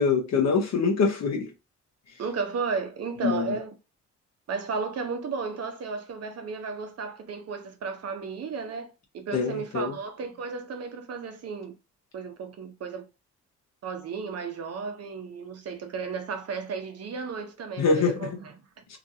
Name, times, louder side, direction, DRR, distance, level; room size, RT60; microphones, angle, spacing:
voice 1, 0.0-1.5 3.2-3.6 9.3-9.9 17.8-18.4 18.9-19.0, left 5 dB, 60° left, 1.0 m, -24 dB
voice 2, 2.2-3.7 4.5-11.8 12.1-13.1 13.8-19.0, right 5 dB, 55° right, 0.8 m, -34 dB
3.0 x 2.5 x 2.7 m
cardioid pair, 90°, 30 cm